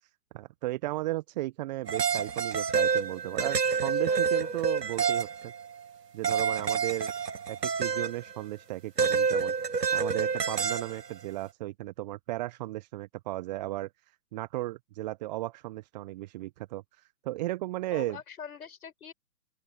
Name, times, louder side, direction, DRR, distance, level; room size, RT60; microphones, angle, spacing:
voice 1, 0.3-5.5 6.1-7.1 7.5-13.9 14.3-18.2, right 17 dB, 25° right, 1.0 m, -35 dB
sound 1, 1.9-5.8 6.2-8.3 9.0-11.1, right 6 dB, 80° right, 1.6 m, -28 dB
voice 2, 4.1-4.5 17.9-19.1, left 7 dB, 65° left, 6.5 m, -44 dB
open air
figure-of-eight pair, 130°, 48 cm